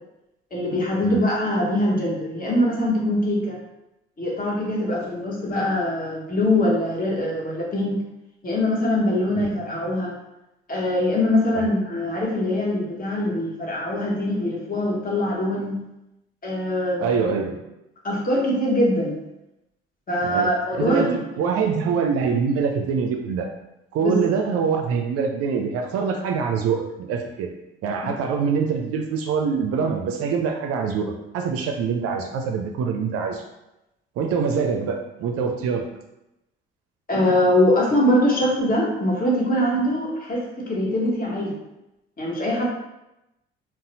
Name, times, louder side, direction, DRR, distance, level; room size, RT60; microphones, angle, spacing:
voice 1, 0.5-3.6 4.2-8.0 8.4-10.1 10.7-15.8 16.4-17.1 18.0-19.2 20.1-21.2 24.0-24.2 37.1-41.6 42.2-42.6, left 1 dB, 30° left, -3 dB, 1.1 m, -23 dB
voice 2, 17.0-17.6 20.2-23.5 23.9-27.5 27.8-33.4 34.2-35.8, right 6 dB, 55° right, 3 dB, 0.4 m, -24 dB
4.0 x 2.0 x 2.7 m, 0.91 s
hypercardioid pair, 50°, 29 cm